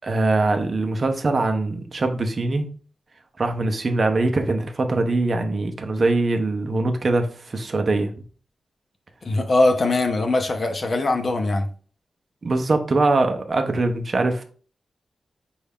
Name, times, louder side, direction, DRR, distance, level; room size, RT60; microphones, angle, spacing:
voice 1, 0.0-2.7 3.4-8.2 12.4-14.4, right 2 dB, 45° right, 5 dB, 0.5 m, -22 dB
voice 2, 9.2-11.7, left 2 dB, 45° left, 5 dB, 0.6 m, -21 dB
5.3 x 2.3 x 3.4 m, 0.41 s
wide cardioid pair, 125°, 0 cm